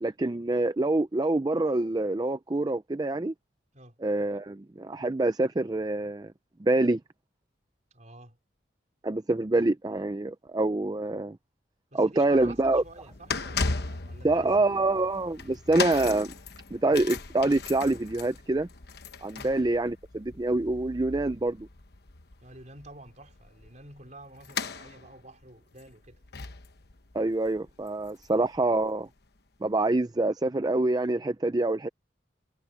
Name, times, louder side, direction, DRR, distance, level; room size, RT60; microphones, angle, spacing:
voice 1, 0.0-3.3 4.0-6.3 6.6-7.0 9.0-11.4 11.9-12.8 14.2-16.3 16.7-18.7 19.2-21.7 27.1-29.1 29.6-31.9, right 2 dB, 20° right, 0.4 m, -26 dB
voice 2, 7.9-8.4 11.9-14.8 15.4-15.6 19.4-19.6 22.4-26.2 28.1-28.2, right 2 dB, 40° right, 4.8 m, -49 dB
sound 1, 12.2-28.6 28.8-29.1 29.9-30.0, left 4 dB, 60° left, 1.1 m, -38 dB
head